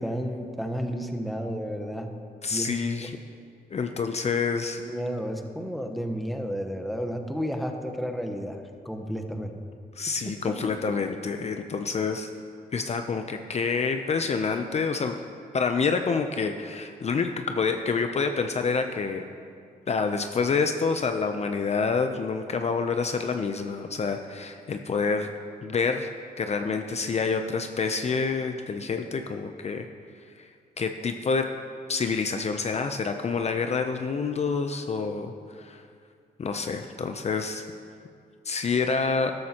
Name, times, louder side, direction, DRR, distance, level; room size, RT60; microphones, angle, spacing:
voice 1, 0.0-2.1 2.5-2.7 3.0-3.1 4.8-8.6 8.8-9.6 10.6-10.7, equal, ahead, 4 dB, 1.0 m, -32 dB
voice 2, 2.4-3.1 3.7-4.8 10.0-12.3 12.7-15.1 15.5-19.2 19.9-25.3 25.6-26.1 26.4-29.9 30.4-30.5 30.8-31.5 31.9-35.8 36.4-37.6 38.4-39.3, left 5 dB, 40° left, 6 dB, 0.6 m, -27 dB
13.0 x 12.5 x 3.0 m, 2.3 s
cardioid pair, 85°, 16 cm